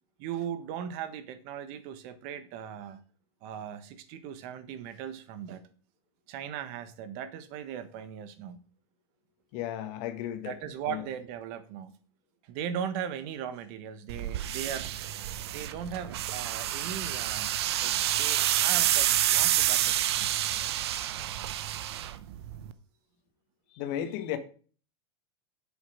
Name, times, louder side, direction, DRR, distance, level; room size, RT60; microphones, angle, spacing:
voice 1, 0.2-3.0 3.4-5.6 6.3-8.6 10.4-11.9 12.4-14.9 15.5-17.5 17.8-20.3, right 8 dB, 55° right, 1.3 m, -38 dB
voice 2, 9.5-10.6 10.9-11.0 23.7-24.4, left 11 dB, 55° left, 1.6 m, -34 dB
sound 1, 14.1-22.7, right 12 dB, 75° right, 0.8 m, -28 dB
8.5 x 7.2 x 5.0 m
hypercardioid pair, 105°, 14 cm